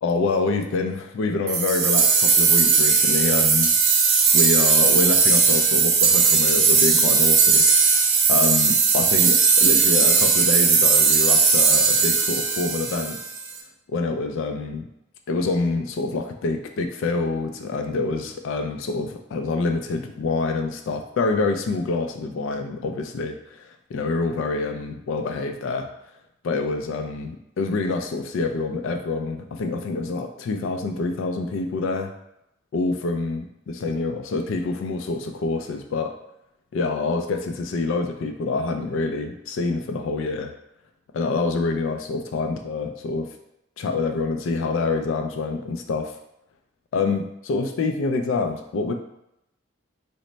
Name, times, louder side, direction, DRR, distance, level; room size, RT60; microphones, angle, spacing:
voice 1, 0.0-3.7 4.3-7.6 8.3-13.2 13.9-14.9 15.3-25.9 26.4-32.1 32.7-36.2 36.7-40.5 41.1-43.3 43.8-46.1 46.9-48.9, left 3 dB, 65° left, 5 dB, 0.3 m, -26 dB
sound 1, 1.5-13.5, right 5 dB, 70° right, 0.5 m, -18 dB
3.1 x 2.1 x 3.9 m, 0.84 s
head